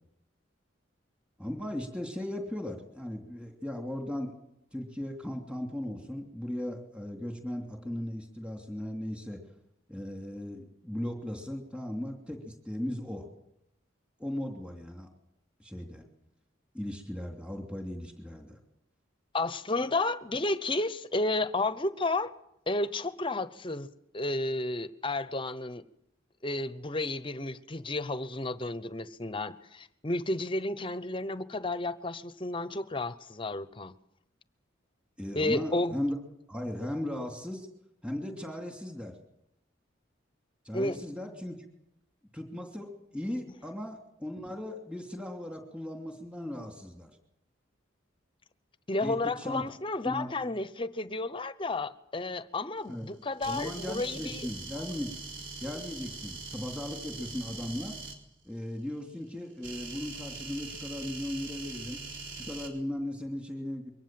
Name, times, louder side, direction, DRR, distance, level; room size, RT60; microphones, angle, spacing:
voice 1, 1.4-4.3 4.7-9.4 9.9-13.3 14.2-15.1 15.6-16.0 16.7-18.6 35.2-36.2 36.5-37.7 38.0-39.2 40.6-41.6 42.3-47.1 49.0-49.6 50.0-50.4 52.9-53.1 53.5-55.1 55.6-58.0 58.4-62.0 62.4-63.9, left 1 dB, 5° right, 3.0 m, -37 dB
voice 2, 19.3-22.3 22.7-25.8 26.4-33.9 35.3-36.0 40.7-41.0 48.9-54.5, left 2 dB, 25° left, 0.9 m, -32 dB
sound 1, 53.4-58.2 59.6-62.7, right 3 dB, 70° right, 4.1 m, -42 dB
23.0 x 18.5 x 7.7 m
head